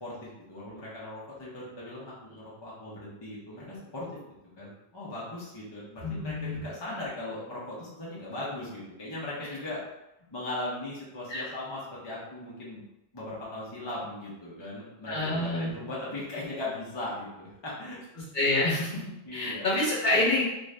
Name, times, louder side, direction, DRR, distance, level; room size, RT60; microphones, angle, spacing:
voice 1, 0.0-4.1 4.6-9.8 10.3-12.8 13.1-18.0 19.2-19.7, left 2 dB, 30° left, -7 dB, 0.7 m, -38 dB
voice 2, 6.0-6.6 11.3-11.4 15.1-15.7 18.3-19.0 19.3-20.4, left 2 dB, 50° left, -6 dB, 1.0 m, -27 dB
2.5 x 2.5 x 3.2 m, 0.90 s
omnidirectional pair, 1.1 m